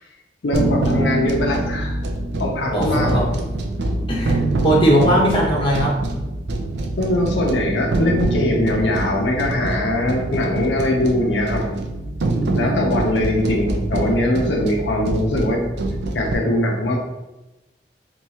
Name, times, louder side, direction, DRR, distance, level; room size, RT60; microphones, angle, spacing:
voice 1, 0.4-2.0 2.4-3.2 7.0-11.7 12.6-15.7 16.1-17.0, left 1 dB, 85° left, 0 dB, 0.6 m, -21 dB
sound 1, 0.5-16.3, right 2 dB, 70° right, 0.4 m, -24 dB
voice 2, 2.7-3.2 4.1-4.4 4.6-5.9, equal, 30° left, -4 dB, 0.9 m, -18 dB
2.9 x 2.3 x 4.0 m, 1.0 s
head